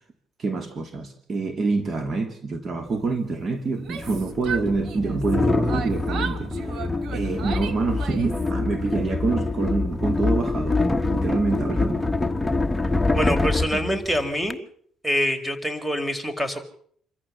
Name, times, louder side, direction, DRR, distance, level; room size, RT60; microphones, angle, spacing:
voice 1, 0.4-6.5 7.1-10.8 11.1-12.1 13.7-14.0, right 3 dB, 40° right, 8 dB, 2.8 m, -26 dB
sound 1, 2.9-3.0 3.9-14.5, left 2 dB, 10° left, 1.3 m, -25 dB
Yell, 3.7-5.3 5.7-8.5, right 6 dB, 65° right, 2.2 m, -35 dB
voice 2, 13.1-14.6 15.0-16.6, equal, 10° right, 9 dB, 4.3 m, -25 dB
27.5 x 14.0 x 7.3 m, 0.62 s
cardioid pair, 85°, 0 cm